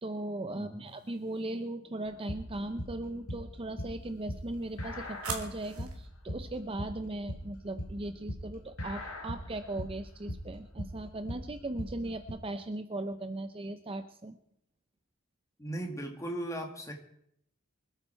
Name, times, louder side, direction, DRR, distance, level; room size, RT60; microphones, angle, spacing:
voice 1, 0.0-14.4, right 2 dB, 25° right, 10 dB, 0.6 m, -38 dB
voice 2, 0.5-0.9 15.6-16.9, right 1 dB, 15° left, 3 dB, 2.1 m, -37 dB
sound 1, 0.9-1.6 4.0-6.1, right 5 dB, 90° right, 2.3 m, -44 dB
sound 2, 2.1-12.3, equal, 80° left, 2.8 m, -40 dB
25.0 x 9.1 x 4.5 m, 0.73 s
head